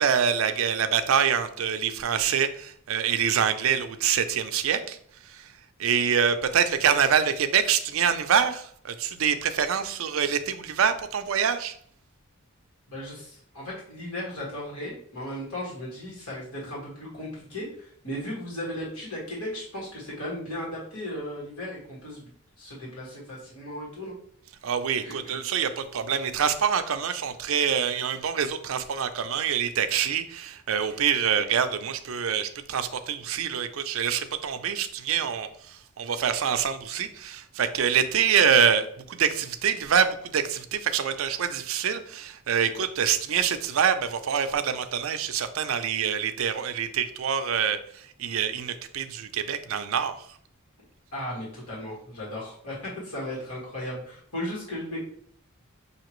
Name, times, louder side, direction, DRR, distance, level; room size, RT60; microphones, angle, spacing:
voice 1, 0.0-5.0 5.3-5.5 5.8-11.7 24.6-50.1, right 7 dB, 70° right, 10 dB, 0.4 m, -25 dB
voice 2, 12.9-22.3 22.6-24.1 25.0-25.4 51.1-55.0, left 1 dB, 85° left, -4 dB, 1.9 m, -36 dB
5.7 x 2.8 x 3.0 m, 0.62 s
head